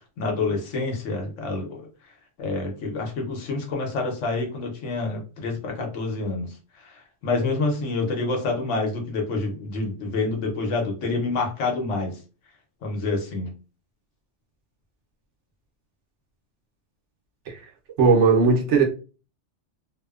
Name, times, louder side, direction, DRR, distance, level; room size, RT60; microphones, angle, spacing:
voice 1, 0.2-1.8 2.4-6.5 6.8-12.2 12.8-13.5, left 3 dB, 85° left, 1.1 m, -27 dB
voice 2, 18.0-18.8, right 4 dB, 80° right, 1.0 m, -18 dB
2.7 x 2.1 x 2.3 m
omnidirectional pair, 1.2 m